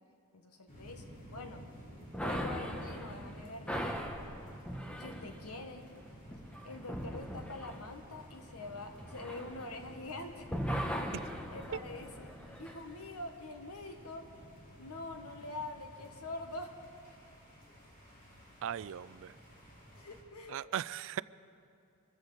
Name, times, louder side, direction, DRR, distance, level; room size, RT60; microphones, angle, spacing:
voice 1, 0.3-1.0 1.3-1.6 2.2-3.9 5.0-5.9 6.6-10.5 11.5-12.3 12.6-14.3 14.8-16.7 19.9-20.6, left 2 dB, 80° left, 5 dB, 1.5 m, -45 dB
sound 1, 0.7-20.2, equal, 40° left, 3.6 m, -53 dB
sound 2, 2.1-10.1 10.5-12.8, equal, 5° left, 1.0 m, -40 dB
voice 2, 18.6-19.3 20.5-21.2, right 10 dB, 60° right, 18 dB, 0.3 m, -38 dB
25.5 x 14.0 x 4.1 m, 2.5 s
head